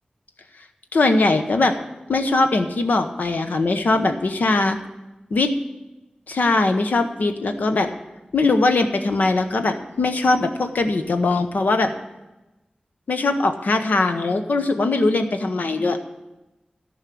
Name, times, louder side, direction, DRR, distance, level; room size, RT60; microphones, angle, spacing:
voice 1, 0.9-1.8 2.1-4.8 5.3-5.5 6.3-7.9 8.3-11.9 13.1-16.0, left 3 dB, 90° left, 7 dB, 0.9 m, -20 dB
13.5 x 5.5 x 8.4 m, 1.0 s
wide cardioid pair, 55°, 3 cm